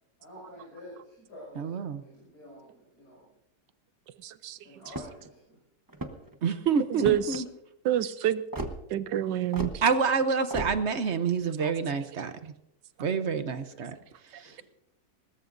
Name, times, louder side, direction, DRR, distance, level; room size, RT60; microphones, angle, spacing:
voice 1, 0.2-3.3 4.6-5.6 13.5-13.8 14.3-14.6, left 1 dB, 65° left, -5 dB, 6.4 m, -49 dB
voice 2, 1.6-2.0 6.4-7.4 9.8-12.5 13.0-13.9 14.4-14.5, right 5 dB, 50° right, 10 dB, 0.9 m, -27 dB
voice 3, 4.2-4.6 6.9-7.4 7.8-8.4 8.9-9.7 11.6-11.7, right 11 dB, 80° right, 14 dB, 1.3 m, -27 dB
sound 1, 4.9-5.3 5.9-6.4 7.0-7.4 8.5-8.8 9.5-9.8 10.5-10.7, right 2 dB, 15° right, 0.7 m, -35 dB
21.0 x 19.5 x 2.6 m, 0.84 s
omnidirectional pair, 1.9 m